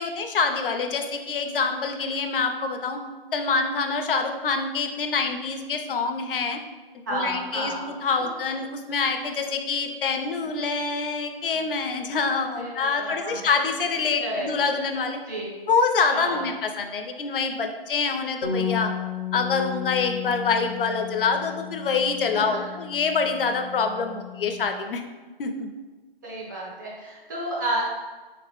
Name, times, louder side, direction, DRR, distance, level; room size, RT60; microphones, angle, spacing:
voice 1, 0.0-3.0 3.3-6.6 7.1-15.2 15.7-18.9 19.3-25.0 25.4-25.7, left 4 dB, 60° left, 5 dB, 0.5 m, -26 dB
voice 2, 7.1-8.3 12.5-13.4 14.2-14.5 15.3-15.5 16.1-16.5 22.3-22.6 26.2-27.9, right 1 dB, 20° right, -5 dB, 0.5 m, -31 dB
Bass guitar, 18.4-24.7, left 9 dB, 60° right, 1.2 m, -34 dB
3.7 x 2.9 x 3.0 m, 1.3 s
hypercardioid pair, 155°, 30 cm